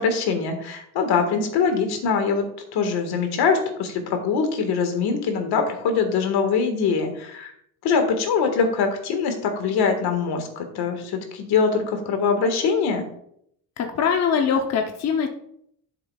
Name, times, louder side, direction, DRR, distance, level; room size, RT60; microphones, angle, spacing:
voice 1, 0.0-2.5 2.7-7.5 7.8-13.1, left 5 dB, 75° left, 5 dB, 1.7 m, -23 dB
voice 2, 13.8-15.3, left 6 dB, 40° left, 3 dB, 0.7 m, -22 dB
12.0 x 6.8 x 2.3 m, 0.70 s
cardioid pair, 160°, 39 cm